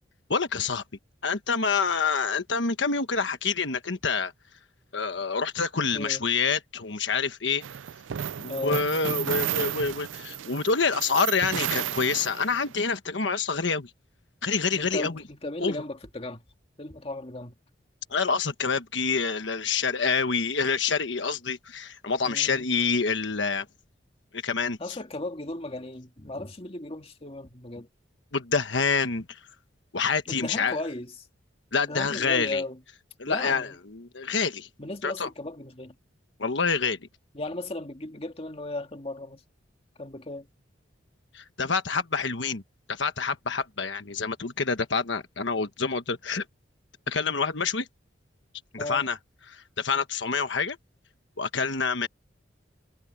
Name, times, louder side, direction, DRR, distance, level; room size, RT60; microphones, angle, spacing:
voice 1, 0.3-0.8 1.2-4.3 4.9-7.6 8.4-13.9 14.4-15.2 15.6-15.8 18.1-23.7 24.3-25.0 28.3-29.4 29.9-30.8 31.7-32.6 33.2-34.7 35.0-35.3 36.4-37.0 41.3-42.6 42.9-46.4 47.1-47.9 48.7-49.2 49.5-50.8 51.4-52.1, left 5 dB, 70° left, 1.3 m, -27 dB
sound 1, 7.6-12.8, right 9 dB, 85° right, 0.5 m, -32 dB
voice 2, 8.5-8.8 14.7-16.4 16.8-17.5 22.3-22.7 24.8-27.9 30.3-31.1 31.8-32.8 33.3-33.8 34.8-35.9 37.4-39.4 40.0-40.5 48.8-49.0, left 2 dB, 30° left, 2.0 m, -36 dB
head